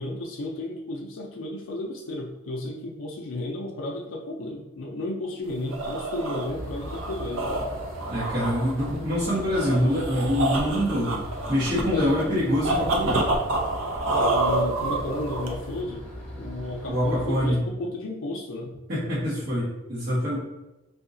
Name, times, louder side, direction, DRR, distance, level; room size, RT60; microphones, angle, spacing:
voice 1, 0.0-7.6 11.9-12.2 14.1-16.0 16.4-18.8, left 1 dB, 70° left, -1 dB, 0.4 m, -33 dB
sound 1, 5.5-15.8, right 2 dB, 70° right, 0.5 m, -28 dB
sound 2, 6.5-17.5, equal, 5° left, 0.9 m, -39 dB
voice 2, 8.1-11.2 11.5-13.2 16.9-17.6 18.9-20.4, equal, 50° right, -11 dB, 1.2 m, -25 dB
3.9 x 2.8 x 2.6 m, 1.0 s
head